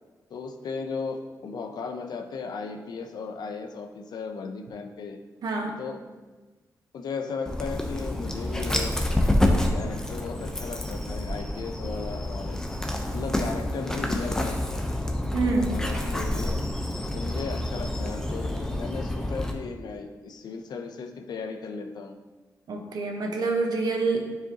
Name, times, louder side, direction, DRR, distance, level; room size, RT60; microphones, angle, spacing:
voice 1, 0.3-5.2 5.8-6.0 6.9-8.9 9.5-12.6 13.1-14.9 15.7-16.6 17.1-22.2, left 4 dB, 80° left, 6 dB, 0.6 m, -36 dB
voice 2, 5.4-5.7 15.3-15.8 22.7-24.3, right 3 dB, 75° right, 2 dB, 1.0 m, -27 dB
Dog, 7.5-19.5, left 1 dB, 10° left, 0.7 m, -28 dB
9.1 x 4.9 x 2.9 m, 1.3 s
cardioid pair, 95°, 7 cm